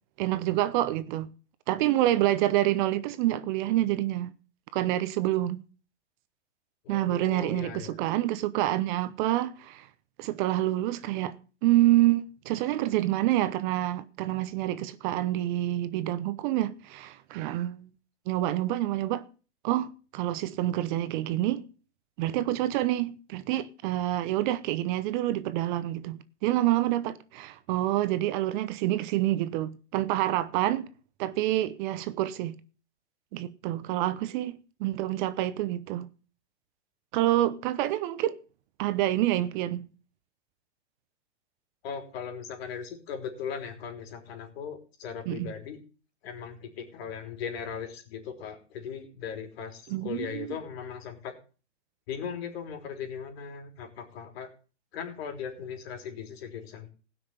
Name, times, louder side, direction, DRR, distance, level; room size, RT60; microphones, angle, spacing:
voice 1, 0.2-1.3 1.7-4.3 4.7-5.6 6.9-9.9 10.2-17.9 18.3-19.2 19.6-21.7 22.2-30.9 31.2-32.6 33.3-36.1 37.1-38.4 38.8-39.9 45.3-45.5 49.9-50.6, right 14 dB, 45° right, 0.8 m, -27 dB
voice 2, 6.8-8.0 41.8-45.8 46.2-51.4 52.1-54.5 54.9-56.9, left 7 dB, 60° left, 3.8 m, -38 dB
16.5 x 6.2 x 6.7 m
hypercardioid pair, 130°, 35 cm